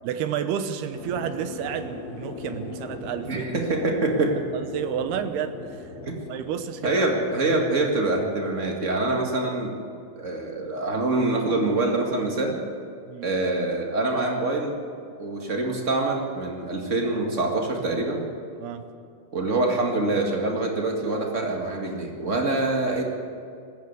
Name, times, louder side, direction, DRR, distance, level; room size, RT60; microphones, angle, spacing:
voice 1, 0.0-3.5 4.5-5.9 6.3-7.0 13.1-13.3 18.6-18.8, right 8 dB, 75° right, 9 dB, 2.9 m, -30 dB
sound 1, 0.9-10.6, left 3 dB, 70° left, 3.5 m, -40 dB
voice 2, 3.3-4.3 6.0-6.2 6.8-9.7 10.1-12.6 13.2-14.8 15.2-18.2 19.3-23.0, right 2 dB, 40° right, 1 dB, 1.1 m, -25 dB
20.5 x 15.5 x 8.3 m, 2.4 s
omnidirectional pair, 4.7 m